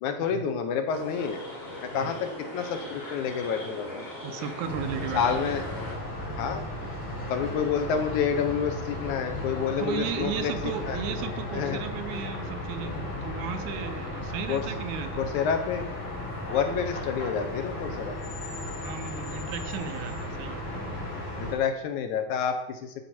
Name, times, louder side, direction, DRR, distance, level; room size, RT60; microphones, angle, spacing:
voice 1, 0.0-1.4 1.8-4.1 5.1-5.6 6.3-6.8 7.3-10.5 10.8-11.0 11.5-11.8 14.5-14.6 15.2-15.8 16.5-18.1 21.4-22.9, left 7 dB, 75° left, 6 dB, 2.4 m, -29 dB
sound 1, 0.9-6.0, left 1 dB, 25° left, 2.6 m, -40 dB
voice 2, 4.2-5.5 9.8-15.2 18.8-21.0, right 8 dB, 80° right, 8 dB, 2.3 m, -35 dB
sound 2, 4.6-21.6, left 1 dB, 60° left, 5.8 m, -35 dB
14.0 x 5.1 x 4.4 m, 0.86 s
omnidirectional pair, 3.5 m